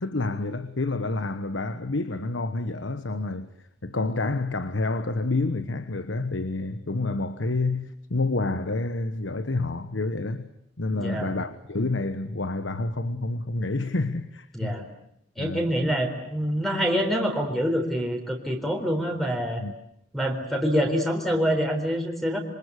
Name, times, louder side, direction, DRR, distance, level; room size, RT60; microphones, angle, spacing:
voice 1, 0.0-3.5 3.8-10.5 10.8-14.8 15.4-15.7 19.6-19.7, left 2 dB, 75° left, 1.2 m, -28 dB
voice 2, 10.9-11.3 14.5-14.8 15.4-19.6 20.1-22.4, equal, ahead, 4.1 m, -26 dB
27.0 x 25.0 x 8.2 m
head